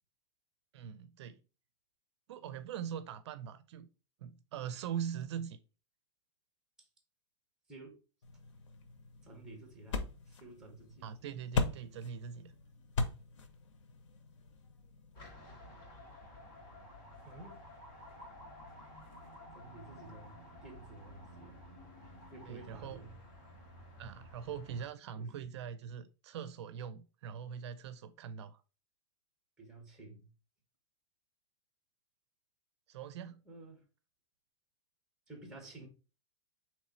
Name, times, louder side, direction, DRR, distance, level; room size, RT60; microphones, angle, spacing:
voice 1, 0.7-1.4 2.3-3.9 4.2-5.6 11.0-12.5 22.5-23.0 24.0-28.6 32.9-33.4, right 8 dB, 65° right, 0.5 m, -42 dB
voice 2, 7.7-8.0 9.2-11.1 17.2-17.6 19.5-21.6 22.3-23.2 25.1-25.3 29.6-30.3 33.2-33.8 35.3-35.9, right 2 dB, 5° right, 1.4 m, -52 dB
sound 1, 8.2-15.3, left 3 dB, 90° left, 0.8 m, -40 dB
sound 2, 15.1-24.9, left 1 dB, 35° left, 2.5 m, -53 dB
4.1 x 3.1 x 4.2 m
supercardioid pair, 150°, 15 cm